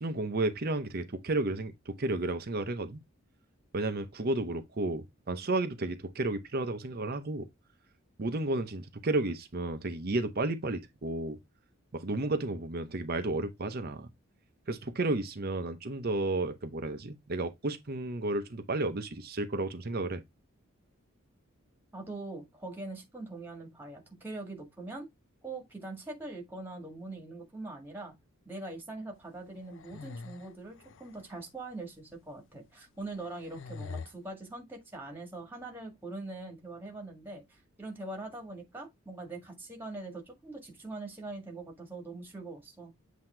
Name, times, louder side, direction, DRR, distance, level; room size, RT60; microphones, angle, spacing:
voice 1, 0.0-3.0 3.7-7.5 8.2-11.4 11.9-14.1 14.7-20.2, right 2 dB, 45° right, 0.7 m, -32 dB
voice 2, 21.9-25.1 25.4-28.1 28.5-42.9, right 2 dB, 10° right, 1.8 m, -42 dB
sound 1, 29.5-31.4 32.1-32.2 33.0-34.1, left 4 dB, 60° left, 0.5 m, -44 dB
7.9 x 2.9 x 4.3 m
head